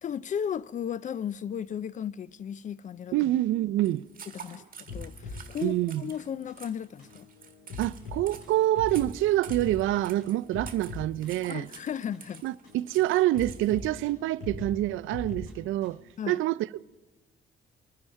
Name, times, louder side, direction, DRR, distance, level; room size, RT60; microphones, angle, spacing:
voice 1, 0.0-3.2 4.3-7.3 11.5-12.4 16.2-16.4, left 8 dB, 40° left, 0.4 m, -35 dB
voice 2, 3.1-4.0 5.6-6.0 7.8-11.7 12.4-16.0 16.3-16.8, right 15 dB, 80° right, 0.4 m, -26 dB
sound 1, 3.8-13.9, right 7 dB, 45° right, 1.8 m, -49 dB
sound 2, 4.9-16.1, left 3 dB, 90° left, 6.7 m, -42 dB
24.5 x 9.7 x 4.5 m
cardioid pair, 90°, 20 cm